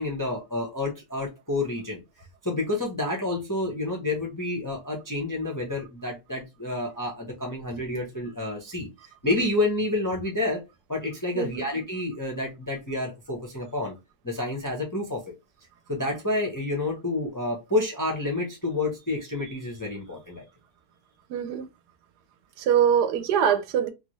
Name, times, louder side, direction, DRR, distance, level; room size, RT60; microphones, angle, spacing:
voice 1, 0.0-2.0 2.4-8.9 9.2-10.6 10.9-13.9 14.2-15.2 15.9-20.4, left 2 dB, 25° left, 0.5 m, -29 dB
voice 2, 11.3-11.7 21.3-21.7 22.6-23.9, right 8 dB, 90° right, 1.2 m, -23 dB
3.2 x 2.4 x 3.0 m
omnidirectional pair, 1.7 m